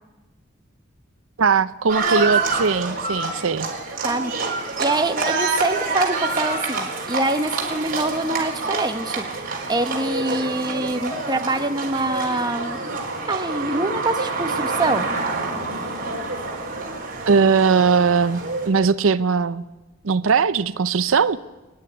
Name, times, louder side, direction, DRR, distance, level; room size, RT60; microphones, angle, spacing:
voice 1, 1.4-3.7 10.3-10.4 17.3-19.6 20.0-21.4, right 5 dB, 85° right, 14 dB, 0.6 m, -19 dB
Livestock farm animals working animals, 1.9-18.7, right 3 dB, 45° right, 4.3 m, -27 dB
voice 2, 4.8-9.2 9.7-12.8 13.3-15.1, right 2 dB, 20° right, 6 dB, 1.2 m, -25 dB
28.5 x 10.5 x 9.8 m, 1.1 s
head